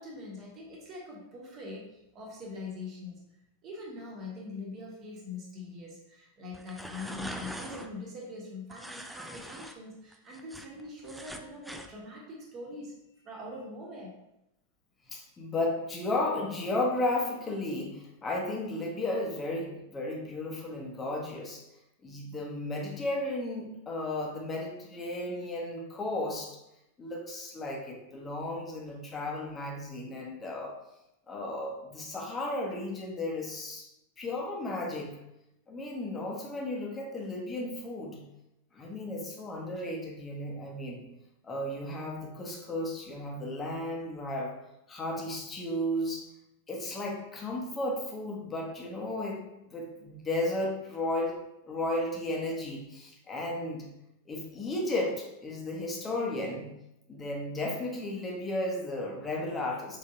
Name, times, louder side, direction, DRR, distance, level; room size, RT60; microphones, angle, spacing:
voice 1, 0.0-3.2 3.6-14.1, left 2 dB, 30° right, -2 dB, 1.4 m, -43 dB
sound 1, 6.5-7.9 8.7-9.7 10.1-11.9, right 1 dB, 5° right, 0.4 m, -42 dB
voice 2, 15.1-21.6 22.0-26.5 27.0-30.7 31.3-33.9 34.2-35.2 35.7-38.2 38.7-41.0 41.4-44.5 44.9-46.2 46.7-51.3 51.7-53.9 54.2-56.7 57.1-60.0, left 1 dB, 20° left, -1 dB, 1.1 m, -34 dB
5.2 x 3.7 x 2.7 m, 0.85 s
figure-of-eight pair, 90°, 0 cm